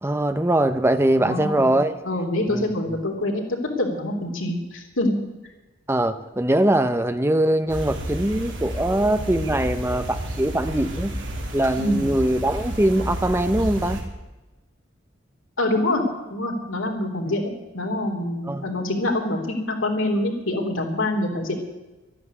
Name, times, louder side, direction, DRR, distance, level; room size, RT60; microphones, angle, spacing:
voice 1, 0.0-1.9 2.5-3.0 5.9-11.1 11.5-14.0 18.4-18.7, right 1 dB, 10° right, 10 dB, 0.8 m, -22 dB
voice 2, 1.2-1.7 2.0-3.4 3.8-5.1 11.8-12.0 15.6-16.0 16.3-21.6, left 1 dB, 90° left, 1 dB, 3.3 m, -25 dB
sound 1, 7.7-14.0, equal, 65° right, 3.1 m, -31 dB
12.0 x 11.0 x 9.6 m, 1.1 s
head